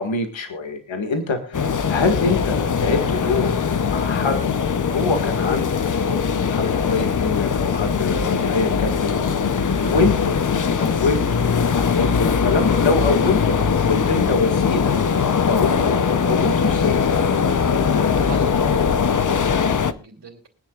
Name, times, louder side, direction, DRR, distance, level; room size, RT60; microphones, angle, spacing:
voice 1, 0.0-4.4 4.8-10.1 10.8-15.0 15.5-17.0, left 4 dB, 85° left, 5 dB, 2.0 m, -25 dB
sound 1, 1.5-19.9, left 6 dB, 45° left, 0.8 m, -21 dB
voice 2, 18.3-20.5, right 5 dB, 60° right, 1 dB, 3.0 m, -39 dB
24.0 x 9.9 x 2.4 m, 0.34 s
wide cardioid pair, 160°, 45 cm